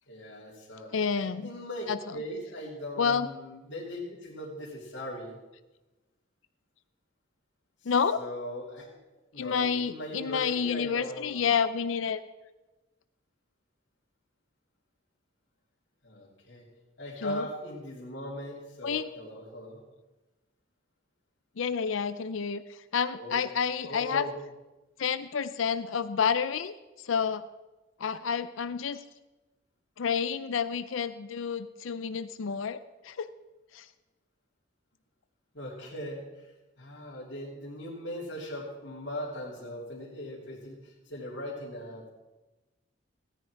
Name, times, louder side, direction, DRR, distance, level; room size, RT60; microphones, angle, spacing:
voice 1, 0.1-5.4 7.8-8.9 9.3-11.4 16.0-16.6 17.0-19.8 23.1-23.4 23.8-24.3 35.5-36.5 36.8-42.1, equal, 65° left, -7 dB, 3.1 m, -39 dB
voice 2, 0.9-1.5 1.9-2.0 3.0-3.3 7.9-8.2 9.4-12.2 17.2-17.5 18.8-19.1 21.6-24.3 25.0-27.4 28.0-29.0 30.0-33.3 33.7-33.9, left 6 dB, 90° left, 13 dB, 0.5 m, -29 dB
16.0 x 10.0 x 4.6 m, 1.1 s
head